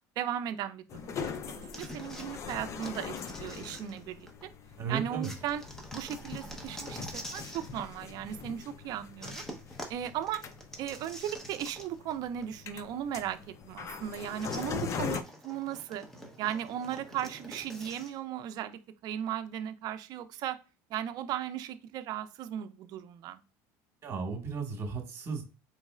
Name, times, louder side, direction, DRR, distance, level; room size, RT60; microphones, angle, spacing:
voice 1, 0.2-4.5 4.9-5.6 5.9-9.4 9.9-10.4 10.8-16.1 16.4-20.6 20.9-23.4, right 10 dB, 55° right, 11 dB, 0.5 m, -37 dB
sound 1, 0.9-15.2, left 6 dB, 40° left, 0.5 m, -42 dB
sound 2, 1.7-4.4 5.2-7.7 9.2-12.1 12.4-12.5 14.4-18.2, equal, 5° left, 0.9 m, -46 dB
voice 2, 4.8-5.3 24.0-25.4, right 5 dB, 35° right, 3 dB, 1.6 m, -35 dB
4.1 x 3.1 x 2.4 m, 0.32 s
supercardioid pair, 120°, 8 cm